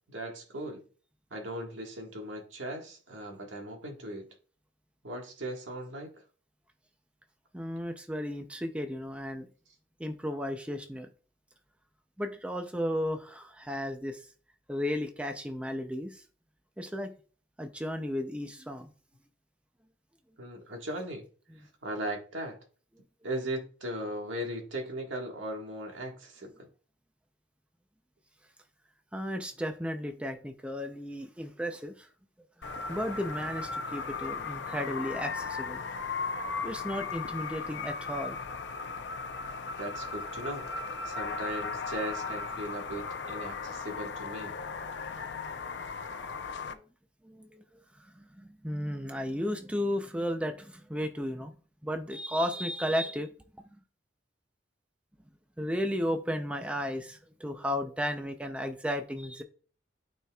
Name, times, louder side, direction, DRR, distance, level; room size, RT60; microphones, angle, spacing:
voice 1, 0.1-0.8 1.3-4.2 5.0-6.1 20.4-21.3 21.8-22.6 23.2-26.7 39.8-40.7 41.0-44.5, right 1 dB, 90° right, 1.7 m, -38 dB
voice 2, 7.5-9.5 10.0-11.1 12.2-14.3 14.7-16.2 16.8-17.1 17.6-18.9 21.5-21.6 29.1-32.1 32.6-35.8 36.6-38.4 46.6-46.9 47.2-51.5 51.8-53.3 55.6-59.4, equal, 5° right, 0.5 m, -34 dB
sound 1, 32.6-46.7, left 4 dB, 70° left, 0.7 m, -37 dB
12.5 x 4.3 x 2.4 m
head